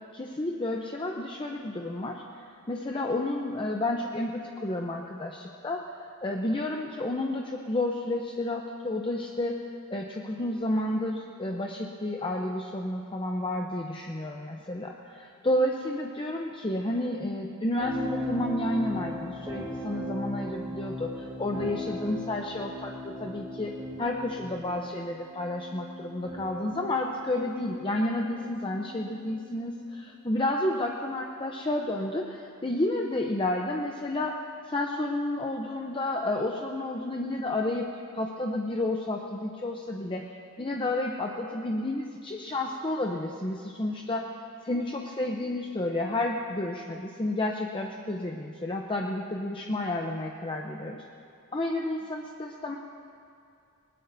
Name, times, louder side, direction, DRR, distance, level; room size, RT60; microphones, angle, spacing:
voice 1, 0.1-2.2 2.7-5.8 6.2-9.6 9.9-23.7 24.0-37.9 38.1-40.2 40.6-44.3 44.6-51.0 51.5-52.8, left 1 dB, 25° left, 1 dB, 0.6 m, -31 dB
sound 1, 17.8-29.5 30.4-30.7, left 1 dB, 20° right, 3.7 m, -38 dB
20.0 x 19.5 x 2.7 m, 2.5 s
head